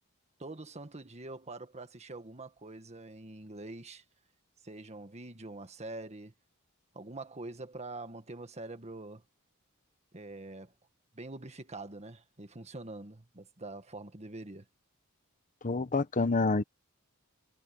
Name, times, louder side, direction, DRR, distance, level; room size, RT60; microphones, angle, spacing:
voice 1, 0.4-4.0 4.6-6.3 6.9-9.2 10.1-10.7 11.1-14.7, right 2 dB, 30° right, 1.7 m, -45 dB
voice 2, 15.6-16.6, left 3 dB, 35° left, 1.0 m, -27 dB
head